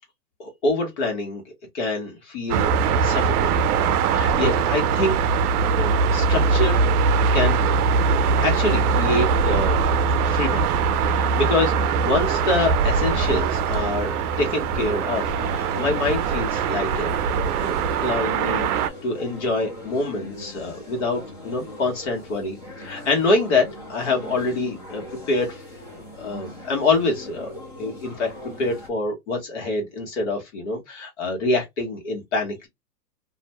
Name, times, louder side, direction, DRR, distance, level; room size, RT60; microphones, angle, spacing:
voice 1, 0.4-1.4 1.7-3.7 4.0-5.2 5.8-6.8 7.3-7.6 8.4-9.8 10.2-10.7 11.0-17.2 17.6-25.6 26.2-27.5 27.8-28.3 28.6-32.7, left 2 dB, 45° left, 1.2 m, -26 dB
sound 1, 2.5-18.9, right 5 dB, 70° right, 0.5 m, -21 dB
sound 2, 14.3-28.9, left 1 dB, 20° left, 0.3 m, -39 dB
2.5 x 2.1 x 3.0 m
hypercardioid pair, 150°, 47 cm